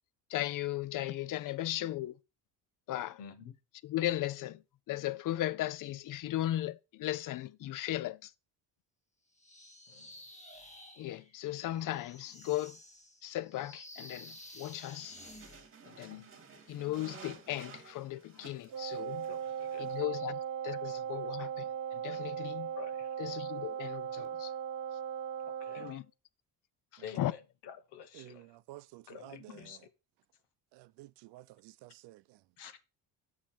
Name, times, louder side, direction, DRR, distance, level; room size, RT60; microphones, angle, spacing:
voice 1, 0.3-2.2 2.9-3.2 3.8-4.6 4.9-8.3 11.0-12.8 13.2-15.2 15.8-16.3 16.7-19.3 19.8-22.7 23.2-24.5 25.7-26.1 26.9-27.3 29.3-29.7, left 14 dB, 50° left, 0.6 m, -37 dB
voice 2, 3.2-3.5 9.9-10.2 19.2-19.9 22.8-23.1 25.6-25.9 27.0-28.5 29.1-29.8 32.6-32.8, left 8 dB, 75° left, 1.3 m, -49 dB
sound 1, 9.4-15.7, left 1 dB, 15° left, 1.1 m, -53 dB
sound 2, 14.9-20.0, right 6 dB, 30° right, 1.7 m, -54 dB
Wind instrument woodwind instrument, 18.7-26.0, right 8 dB, 45° right, 1.3 m, -38 dB
voice 3, 28.1-29.9 30.7-32.4, right 18 dB, 80° right, 0.5 m, -52 dB
7.2 x 6.5 x 4.4 m
cardioid pair, 120°, 41 cm